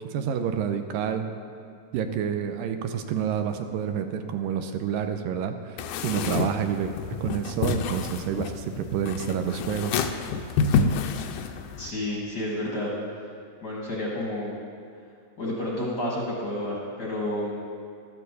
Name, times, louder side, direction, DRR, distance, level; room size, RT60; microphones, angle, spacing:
voice 1, 0.1-1.3 1.9-6.9 7.2-10.0, right 8 dB, 85° right, 7 dB, 2.3 m, -28 dB
sound 1, 5.8-11.9, left 5 dB, 80° left, 1.9 m, -28 dB
voice 2, 11.8-13.2 13.6-14.5 15.4-17.5, left 1 dB, 50° left, -4 dB, 1.2 m, -30 dB
13.5 x 12.0 x 4.1 m, 2.4 s
omnidirectional pair, 4.0 m